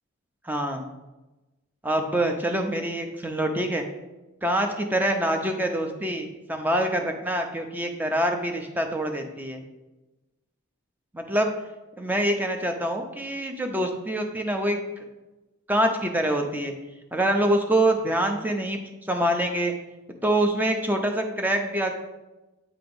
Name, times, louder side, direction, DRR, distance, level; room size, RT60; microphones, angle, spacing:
voice 1, 0.4-0.8 1.8-3.9 4.4-9.6 11.1-11.5 12.0-14.8 15.7-16.7 17.1-18.8 19.1-19.7 20.2-21.9, right 1 dB, 10° right, 4 dB, 0.6 m, -25 dB
8.6 x 3.0 x 5.2 m, 1.1 s
head